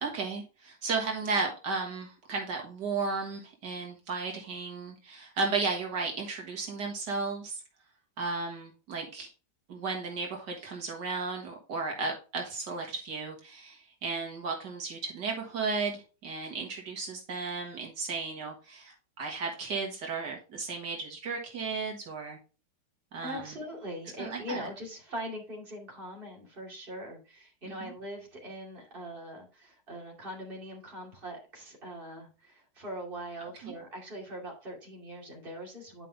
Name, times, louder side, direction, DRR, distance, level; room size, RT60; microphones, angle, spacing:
voice 1, 0.0-7.6 8.2-9.3 9.7-22.4 23.1-23.5 24.2-24.7 27.8-27.9 33.6-33.8, right 4 dB, 80° right, 1 dB, 2.3 m, -34 dB
voice 2, 23.2-36.1, equal, 30° right, -1 dB, 2.6 m, -42 dB
9.8 x 5.3 x 3.3 m, 0.33 s
omnidirectional pair, 1.8 m